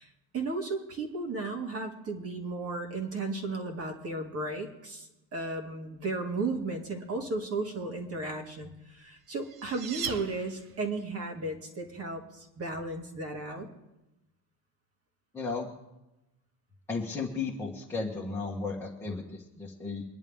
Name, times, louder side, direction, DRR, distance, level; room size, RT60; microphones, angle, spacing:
voice 1, 0.0-13.7, right 3 dB, 35° right, 3 dB, 2.3 m, -35 dB
sound 1, 9.0-11.0, right 7 dB, 55° right, 1.1 m, -39 dB
voice 2, 15.3-15.7 16.9-20.0, left 4 dB, 5° left, -6 dB, 1.7 m, -34 dB
26.0 x 10.5 x 3.6 m, 0.95 s
cardioid pair, 165°, 41 cm